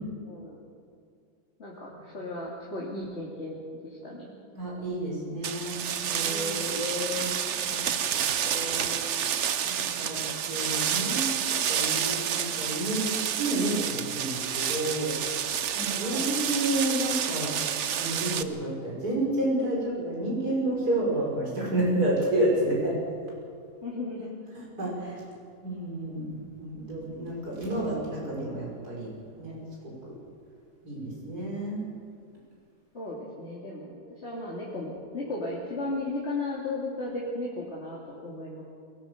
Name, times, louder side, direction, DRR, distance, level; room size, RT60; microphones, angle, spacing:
voice 1, 0.2-0.6 1.6-4.3 6.2-6.9 15.9-16.3 23.8-24.3 32.9-38.6, left 2 dB, 45° left, -5 dB, 3.0 m, -35 dB
voice 2, 4.5-7.3 7.6-7.9 8.4-8.9 9.6-11.3 11.7-15.1 15.7-17.5 17.9-23.0 24.5-25.2 25.6-26.3 26.6-29.1 29.4-29.5 29.8-30.1 30.8-31.8, right 1 dB, 90° right, -4 dB, 6.9 m, -30 dB
grass rustling uncut, 5.4-18.4, right 8 dB, 55° right, 1.0 m, -29 dB
22.5 x 18.5 x 6.7 m, 2.3 s
omnidirectional pair, 1.6 m